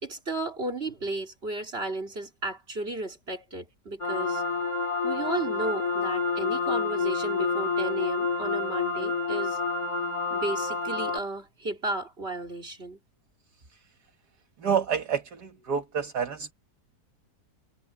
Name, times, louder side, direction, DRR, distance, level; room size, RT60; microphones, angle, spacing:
voice 1, 0.0-4.4 5.0-9.6 10.3-13.0, right 2 dB, 35° right, 3.3 m, -34 dB
sound 1, 4.0-11.2, left 4 dB, 55° left, 5.2 m, -28 dB
voice 2, 14.6-16.5, right 7 dB, 70° right, 2.2 m, -28 dB
omnidirectional pair, 1.8 m